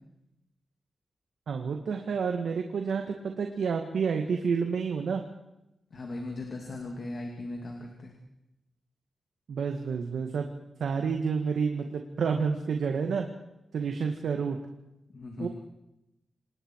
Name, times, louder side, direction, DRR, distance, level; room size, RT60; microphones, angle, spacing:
voice 1, 1.5-5.2 9.5-10.5 10.8-13.3 13.7-14.6 15.4-15.5, right 5 dB, 90° right, 4 dB, 1.9 m, -29 dB
voice 2, 5.9-8.1 15.1-15.5, left 2 dB, 45° left, 1 dB, 2.9 m, -38 dB
27.5 x 20.0 x 4.8 m, 0.89 s
wide cardioid pair, 180°, 0 cm